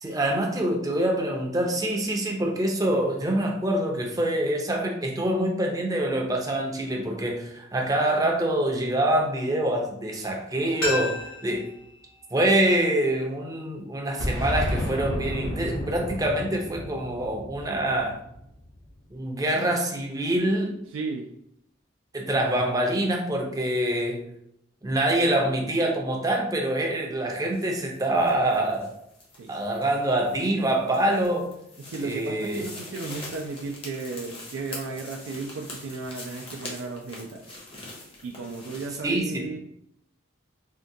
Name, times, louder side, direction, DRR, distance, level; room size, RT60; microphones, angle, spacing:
voice 1, 0.0-11.7 12.3-18.2 19.1-20.8 22.1-24.3 24.8-28.9 29.5-31.5 32.0-32.7 39.0-39.6, right 1 dB, 15° right, 0 dB, 0.4 m, -25 dB
sound 1, 10.8-13.6 13.9-14.0, left 2 dB, 80° left, 1.5 m, -34 dB
Boom, 14.2-18.9, left 1 dB, 65° left, 0.8 m, -32 dB
voice 2, 20.9-21.3 29.3-29.6 31.8-37.5 38.2-39.6, right 4 dB, 85° right, 2 dB, 0.4 m, -35 dB
sound 2, 27.4-39.0, left 2 dB, 30° left, 0.6 m, -44 dB
3.6 x 2.2 x 2.6 m, 0.75 s
head